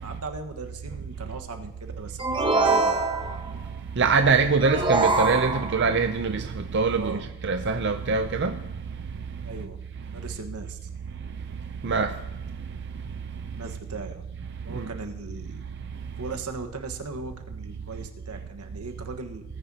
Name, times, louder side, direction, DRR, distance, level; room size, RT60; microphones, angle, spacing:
voice 1, 0.0-3.0 3.5-3.6 7.0-7.2 9.4-9.8 10.1-10.9 13.5-14.2 14.6-15.6 16.2-19.4, right 3 dB, 85° right, 1.4 m, -38 dB
sound 1, 2.2-3.5 4.6-5.9, right 3 dB, 20° right, 1.3 m, -24 dB
voice 2, 4.0-8.6 11.8-12.1 14.8-14.9, right 4 dB, 50° right, 0.5 m, -23 dB
19.0 x 9.9 x 2.9 m
head